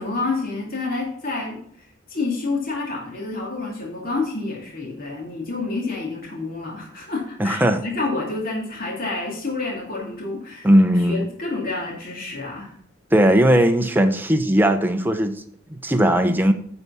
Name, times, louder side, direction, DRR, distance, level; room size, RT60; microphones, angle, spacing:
voice 1, 0.0-10.7 11.0-12.7, left 3 dB, 45° left, -3 dB, 2.5 m, -29 dB
voice 2, 7.4-7.8 10.6-11.3 13.1-15.4 15.8-16.5, equal, 10° right, 6 dB, 0.7 m, -17 dB
9.8 x 4.8 x 5.6 m, 0.64 s
head